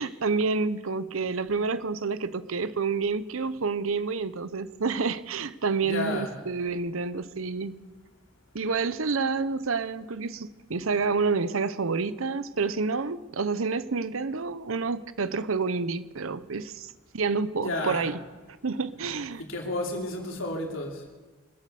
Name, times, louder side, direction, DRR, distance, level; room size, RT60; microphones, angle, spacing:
voice 1, 0.0-7.8 8.5-18.2 18.6-19.4, right 4 dB, 80° right, 14 dB, 0.8 m, -29 dB
voice 2, 5.8-6.3 17.6-18.1 19.4-20.9, left 2 dB, 70° left, 0 dB, 3.1 m, -31 dB
24.5 x 8.3 x 7.0 m, 1.3 s
head